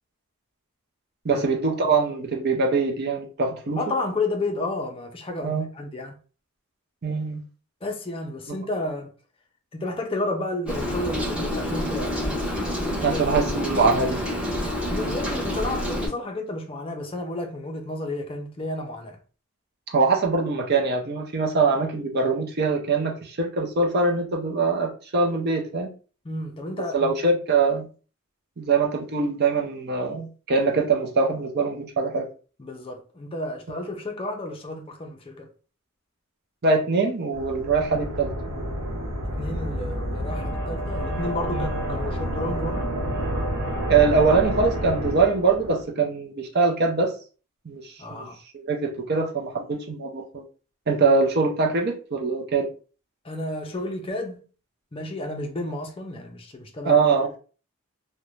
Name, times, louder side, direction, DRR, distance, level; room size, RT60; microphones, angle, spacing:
voice 1, 1.2-3.8 5.4-5.7 7.0-7.4 8.5-8.6 13.0-14.2 19.9-25.9 26.9-27.9 28.6-32.3 36.6-38.3 41.5-41.7 43.9-47.1 47.7-48.3 48.5-50.4 50.9-52.7 56.8-57.3, right 4 dB, 45° right, 0.5 m, -23 dB
voice 2, 3.8-6.2 7.8-9.1 9.7-12.3 13.0-13.2 14.9-19.2 26.2-27.1 32.6-35.5 39.2-43.0 48.0-48.4 53.2-54.5 54.9-57.4, left 2 dB, 25° left, 0.4 m, -31 dB
Rain, 10.7-16.1, left 1 dB, 5° right, 0.7 m, -28 dB
sound 1, 37.3-45.8, equal, 80° right, 0.8 m, -29 dB
2.5 x 2.1 x 3.0 m
head